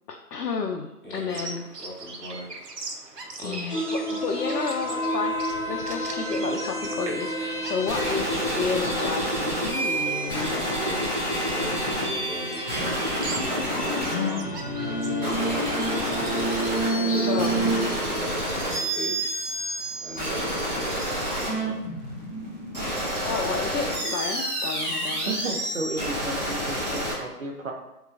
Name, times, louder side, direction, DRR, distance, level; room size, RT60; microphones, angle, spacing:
voice 1, 0.1-1.7 3.4-10.7 14.1-14.2 17.0-17.5 21.5-21.7 23.2-25.4 27.0-27.2, left 5 dB, 85° left, 2 dB, 0.6 m, -31 dB
voice 2, 1.0-1.5 1.8-2.5 3.4-3.9 10.8-11.2 11.4-14.6 14.9-15.7 16.9-17.6 18.0-19.3 20.0-21.8, equal, ahead, -23 dB, 1.1 m, -38 dB
Bird vocalization bird call bird song, 1.3-16.4, right 3 dB, 90° right, 0.8 m, -42 dB
sound 1, 3.7-17.9, right 1 dB, 35° left, 0.6 m, -30 dB
sound 2, 7.9-27.1, equal, 25° right, 1.0 m, -29 dB
voice 3, 25.3-27.7, right 2 dB, 60° right, 1 dB, 0.8 m, -33 dB
3.8 x 3.0 x 2.4 m, 0.92 s
figure-of-eight pair, 165°, 46 cm